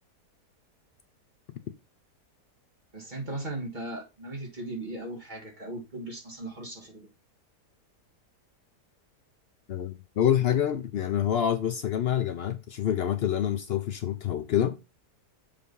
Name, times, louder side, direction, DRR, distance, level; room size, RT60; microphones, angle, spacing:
voice 1, 2.9-7.1, right 2 dB, 30° right, 1.7 m, -37 dB
voice 2, 9.7-14.8, left 10 dB, 85° left, 0.5 m, -27 dB
7.1 x 3.4 x 5.3 m
omnidirectional pair, 1.8 m